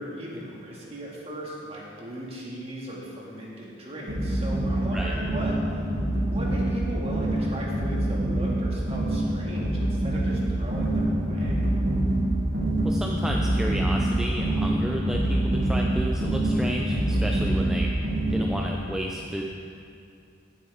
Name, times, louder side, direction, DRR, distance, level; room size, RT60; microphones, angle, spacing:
voice 1, 0.0-5.8 6.3-11.7, equal, 30° right, -4 dB, 1.9 m, -37 dB
sound 1, 4.1-18.7, right 1 dB, 65° right, 2.9 m, -25 dB
voice 2, 12.8-17.9 18.3-19.4, equal, 5° right, -1 dB, 0.5 m, -32 dB
16.0 x 7.9 x 3.6 m, 2.4 s
head